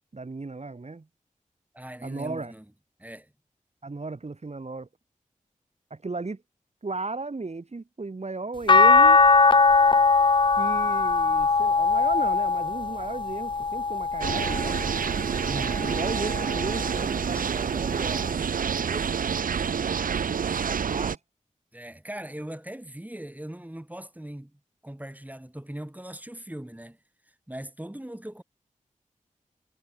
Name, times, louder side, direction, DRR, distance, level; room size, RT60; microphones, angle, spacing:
voice 1, 0.1-1.1 2.0-2.5 3.8-4.9 5.9-6.4 6.8-9.2 10.6-14.9 15.8-19.0 20.6-21.2, right 3 dB, 50° right, 4.2 m, -35 dB
voice 2, 1.7-2.6 3.0-3.3 15.5-15.9 21.7-27.0 27.5-28.4, right 1 dB, 10° right, 5.6 m, -40 dB
sound 1, 8.7-15.0 15.6-16.9 18.3-18.4, left 4 dB, 35° left, 0.4 m, -21 dB
sound 2, 14.2-21.2, right 7 dB, 90° right, 0.7 m, -28 dB
cardioid pair, 50°, 14 cm